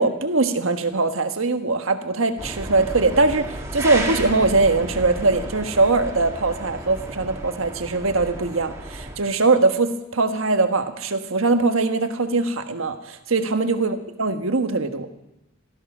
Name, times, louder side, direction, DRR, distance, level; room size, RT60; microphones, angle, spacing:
voice 1, 0.0-15.1, right 3 dB, 90° right, 7 dB, 1.4 m, -21 dB
sound 1, 2.4-9.2, right 1 dB, 15° right, 2.0 m, -33 dB
16.5 x 14.0 x 6.1 m, 0.91 s
head